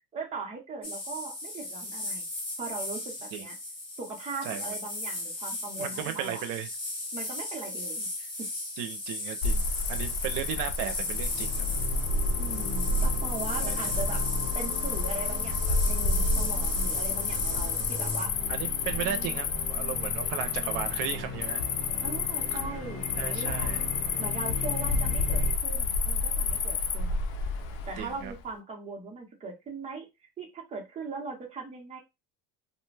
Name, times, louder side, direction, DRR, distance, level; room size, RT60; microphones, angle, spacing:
voice 1, 0.1-2.3 2.6-3.6 4.0-6.4 7.1-8.5 12.4-14.2 14.5-18.3 22.0-23.7 24.2-27.2 27.9-30.1 30.4-32.0, right 4 dB, 20° right, 0.7 m, -39 dB
sound 1, 0.8-18.3, left 2 dB, 15° left, 0.9 m, -37 dB
voice 2, 5.8-6.7 8.8-11.7 13.5-14.0 18.0-18.1 18.5-21.6 22.5-22.7 23.2-23.8 28.0-28.3, right 10 dB, 85° right, 0.6 m, -36 dB
Cricket, 9.4-28.3, left 3 dB, 90° left, 0.6 m, -30 dB
sound 2, 11.3-25.5, left 3 dB, 35° left, 1.3 m, -40 dB
2.5 x 2.2 x 3.2 m
cardioid pair, 160°, 31 cm